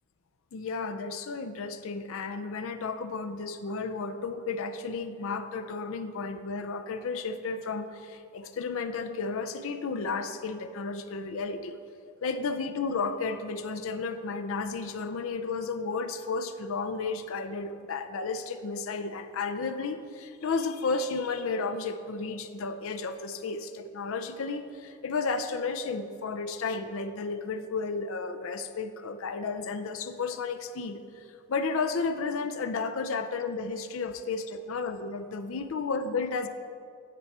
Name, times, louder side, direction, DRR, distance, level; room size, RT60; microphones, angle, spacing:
voice 1, 0.5-11.8 12.2-36.5, left 4 dB, 65° left, 8 dB, 0.4 m, -33 dB
10.0 x 4.5 x 4.2 m, 2.3 s
head